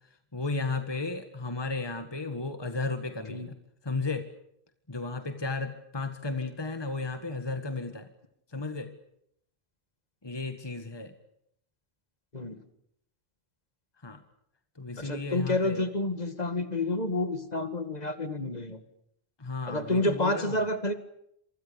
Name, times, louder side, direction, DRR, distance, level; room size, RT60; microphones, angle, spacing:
voice 1, 0.3-3.6 3.8-4.3 4.9-8.1 8.5-8.9 10.2-11.1 14.0-14.2 14.8-15.9 19.4-20.6, left 3 dB, 25° left, 8 dB, 1.8 m, -34 dB
voice 2, 15.0-18.8 19.7-20.9, left 2 dB, 40° left, 9 dB, 2.3 m, -29 dB
27.0 x 24.5 x 7.1 m, 0.73 s
omnidirectional pair, 1.0 m